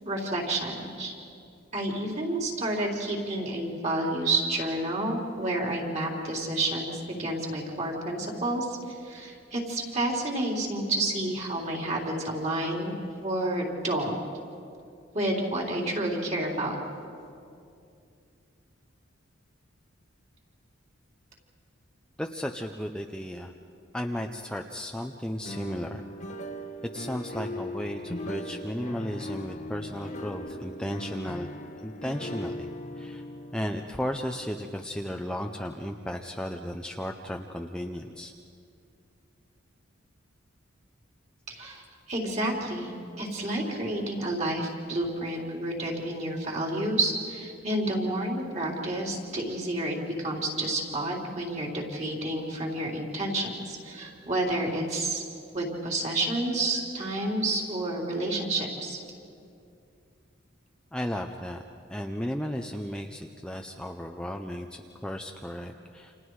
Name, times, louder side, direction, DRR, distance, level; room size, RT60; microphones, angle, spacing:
voice 1, 0.1-1.2 1.7-8.7 9.0-12.9 13.2-14.1 15.1-16.8 41.5-55.2 55.5-59.0, right 1 dB, 35° right, -1 dB, 3.8 m, -30 dB
voice 2, 22.2-23.5 23.9-26.0 26.9-31.5 31.8-32.7 33.0-33.2 33.5-38.3 60.9-61.6 61.9-66.1, equal, 5° left, 3 dB, 0.6 m, -34 dB
sound 1, 25.5-35.4, left 1 dB, 35° left, 1.2 m, -39 dB
29.5 x 27.5 x 4.8 m, 2.5 s
head